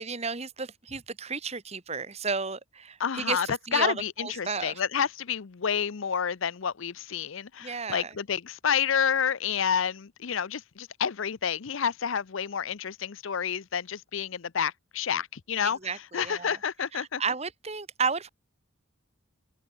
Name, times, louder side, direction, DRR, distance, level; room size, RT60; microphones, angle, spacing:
voice 1, 0.0-4.8 7.6-8.1 15.8-16.6 16.9-18.3, right 5 dB, 30° right, 1.5 m, -33 dB
voice 2, 3.0-17.2, left 7 dB, 70° left, 0.6 m, -29 dB
head